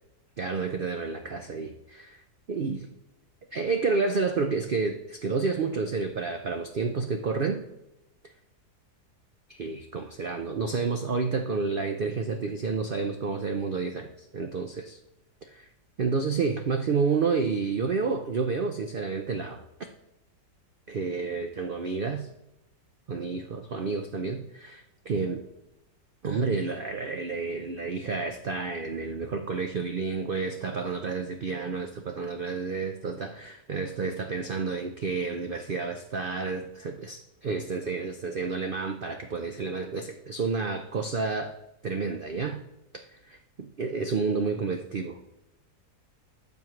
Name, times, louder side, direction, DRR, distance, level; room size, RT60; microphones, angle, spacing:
voice 1, 0.4-2.2 2.5-2.9 3.5-7.6 9.5-15.0 15.5-15.7 16.0-19.6 20.9-22.3 23.1-25.4 26.2-41.5 41.8-42.6 43.1-43.4 43.8-45.3, right 4 dB, 80° right, 6 dB, 0.4 m, -30 dB
12.5 x 7.2 x 3.1 m, 0.90 s
omnidirectional pair, 1.8 m